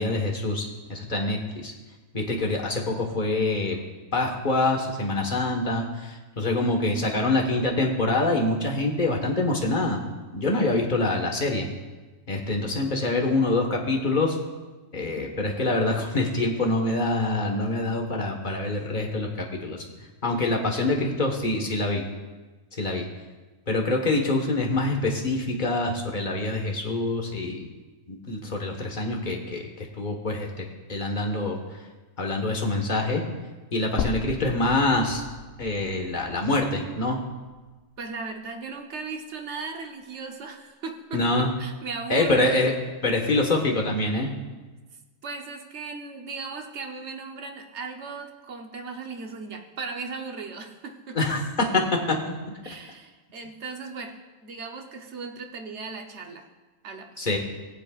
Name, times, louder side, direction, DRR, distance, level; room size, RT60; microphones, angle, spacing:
voice 1, 0.0-1.7 2.1-3.8 4.1-10.0 10.3-11.7 12.3-14.4 14.9-19.8 20.2-22.0 22.8-23.0 23.7-27.6 28.1-29.7 30.0-31.6 32.2-33.2 33.7-35.2 35.6-37.2 41.1-41.6 42.1-42.7 43.0-44.3 51.1-52.6 57.2-57.4, left 2 dB, 35° left, 0 dB, 1.5 m, -25 dB
sound 1, 34.0-38.1 38.5-38.6 40.0-40.1, left 7 dB, 60° left, 0.6 m, -37 dB
voice 2, 38.0-42.5 45.2-51.2 52.6-56.5 56.8-57.3, right 4 dB, 60° right, 4 dB, 1.2 m, -37 dB
21.0 x 7.5 x 2.4 m, 1.2 s
omnidirectional pair, 1.4 m